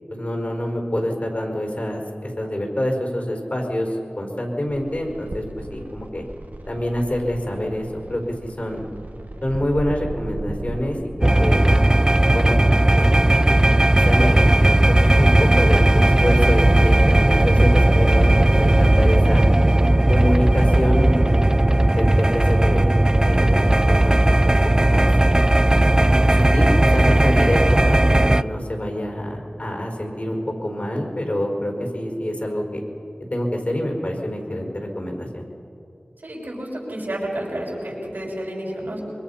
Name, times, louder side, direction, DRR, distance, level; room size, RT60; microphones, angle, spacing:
voice 1, 0.1-6.2 6.7-8.9 9.4-11.7 12.3-12.6 13.0-13.2 13.5-13.6 13.9-19.5 20.1-21.4 22.0-22.9 23.2-24.2 24.4-25.3 26.3-32.8 33.3-35.4, left 1 dB, 50° left, 1 dB, 4.9 m, -26 dB
sound 1, 4.7-10.8, right 2 dB, 65° right, 1.4 m, -36 dB
sound 2, 11.2-28.4, right 1 dB, 25° right, 0.4 m, -16 dB
voice 2, 36.2-39.0, right 1 dB, 80° right, -3 dB, 6.5 m, -30 dB
25.5 x 23.0 x 5.8 m, 2.8 s
wide cardioid pair, 40°, 3 cm